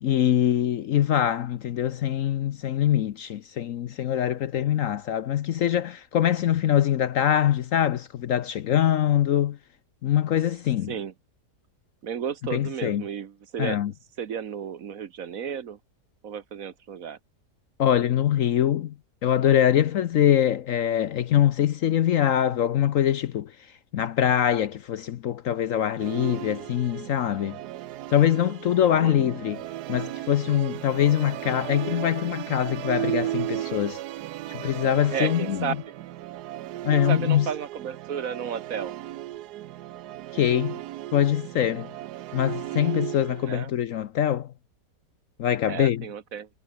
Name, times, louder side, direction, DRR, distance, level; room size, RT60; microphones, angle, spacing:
voice 1, 0.0-9.6 10.0-10.9 12.5-13.0 13.6-13.9 17.8-18.9 19.2-23.5 23.9-27.6 28.1-29.6 29.9-34.0 34.5-35.8 36.8-37.5 40.3-40.8 41.1-41.9 42.3-44.5 45.4-46.0, left 10 dB, 65° left, 0.9 m, -23 dB
voice 2, 12.0-15.8 16.2-17.2 29.0-29.4 35.1-35.9 36.9-38.9 43.4-43.7 45.7-46.5, right 8 dB, 55° right, 1.4 m, -33 dB
Musical instrument, 26.0-43.6, right 14 dB, 75° right, 1.2 m, -35 dB
omnidirectional pair, 1.8 m